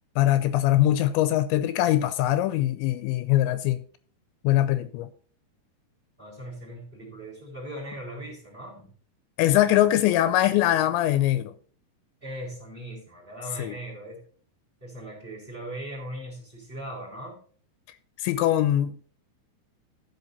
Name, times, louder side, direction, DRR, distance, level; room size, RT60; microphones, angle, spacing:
voice 1, 0.2-3.8 4.4-5.1 9.4-11.5 13.6-13.7 18.2-19.1, left 13 dB, 85° left, 2.9 m, -22 dB
voice 2, 6.2-8.9 12.2-14.2 14.8-17.4, right 1 dB, 10° right, 3.6 m, -39 dB
15.0 x 5.2 x 4.1 m
omnidirectional pair, 5.2 m